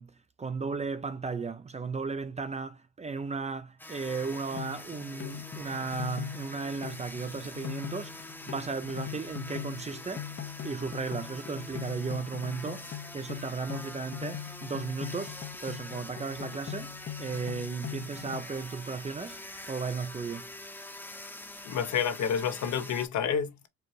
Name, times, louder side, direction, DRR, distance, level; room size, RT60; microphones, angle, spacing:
voice 1, 0.0-20.5, right 4 dB, 25° right, 0.4 m, -35 dB
sound 1, 3.8-23.1, left 1 dB, 5° left, 0.8 m, -45 dB
sound 2, 4.5-18.4, left 10 dB, 40° left, 0.7 m, -41 dB
voice 2, 21.6-23.7, left 8 dB, 70° left, 0.9 m, -29 dB
4.5 x 2.5 x 3.1 m
cardioid pair, 90°, 30 cm